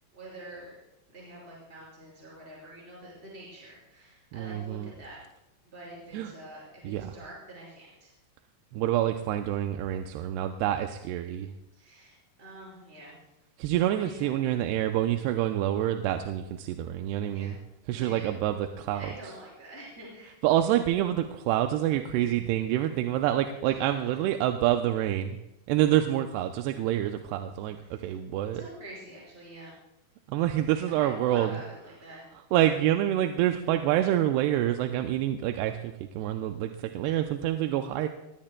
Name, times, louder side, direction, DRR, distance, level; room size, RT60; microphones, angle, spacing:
voice 1, 0.1-0.7 1.1-5.2 5.6-8.1 11.7-13.1 13.8-14.3 17.3-17.6 17.9-18.3 18.9-20.4 23.7-24.2 27.9-28.1 28.5-29.8 30.9-32.2 37.0-37.1, right 1 dB, 15° right, -4 dB, 5.3 m, -46 dB
voice 2, 4.3-4.9 6.1-6.3 6.8-7.1 8.7-11.5 13.6-17.6 17.9-19.1 20.4-25.4 25.7-28.6 30.3-31.5 32.5-38.1, right 12 dB, 85° right, 6 dB, 2.7 m, -27 dB
21.0 x 16.5 x 2.2 m, 0.91 s
omnidirectional pair, 4.7 m